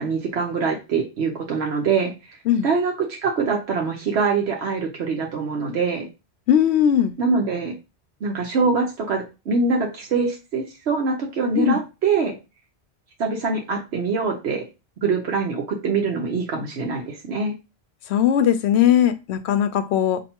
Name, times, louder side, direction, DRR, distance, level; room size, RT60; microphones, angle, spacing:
voice 1, 0.0-2.4 2.6-6.1 7.2-7.7 8.2-12.4 13.2-14.6 15.0-17.5, right 4 dB, 85° right, 1.1 m, -24 dB
voice 2, 6.5-7.1 11.6-11.8 18.1-20.2, left 9 dB, 90° left, 0.8 m, -19 dB
5.3 x 2.8 x 2.9 m
omnidirectional pair, 1.1 m